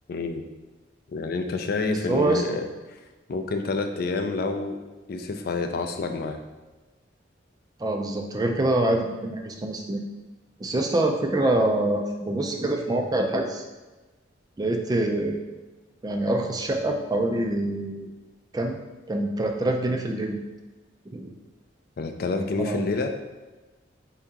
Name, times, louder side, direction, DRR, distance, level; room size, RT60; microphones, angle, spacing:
voice 1, 0.1-0.4 1.1-2.6 3.3-4.8 5.1-6.4 22.0-23.1, left 3 dB, 55° left, 5 dB, 0.4 m, -28 dB
voice 2, 1.9-2.4 7.8-10.0 10.6-13.6 14.6-15.4 16.0-18.1 18.5-18.8 19.1-20.4 21.1-21.3 22.6-22.9, right 1 dB, 20° right, 3 dB, 0.4 m, -25 dB
4.6 x 2.8 x 3.6 m, 1.2 s
head